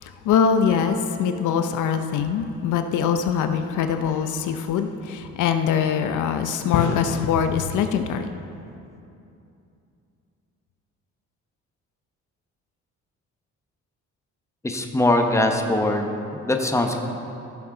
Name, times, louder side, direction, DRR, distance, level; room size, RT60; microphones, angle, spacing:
voice 1, 0.0-8.3, left 7 dB, 80° left, 8 dB, 0.6 m, -23 dB
voice 2, 14.6-17.0, left 1 dB, 10° left, 4 dB, 1.0 m, -22 dB
16.0 x 7.0 x 3.8 m, 2.7 s
cardioid pair, 90°, 30 cm